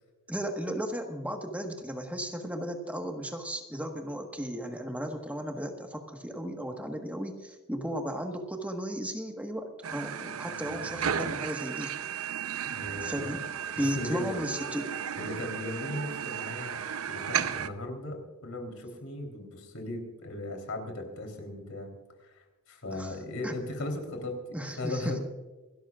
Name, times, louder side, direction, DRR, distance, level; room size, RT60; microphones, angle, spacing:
voice 1, 0.3-11.9 13.0-13.4 13.8-14.9 22.9-23.1 23.4-23.5 24.5-25.2, equal, 5° right, 3 dB, 1.4 m, -35 dB
sound 1, 9.8-17.7, right 8 dB, 75° right, 0.7 m, -34 dB
voice 2, 12.7-13.4 13.8-14.4 15.2-16.8 17.1-21.9 22.2-25.2, left 1 dB, 75° left, 4 dB, 3.6 m, -37 dB
27.5 x 13.0 x 2.4 m, 1.2 s
head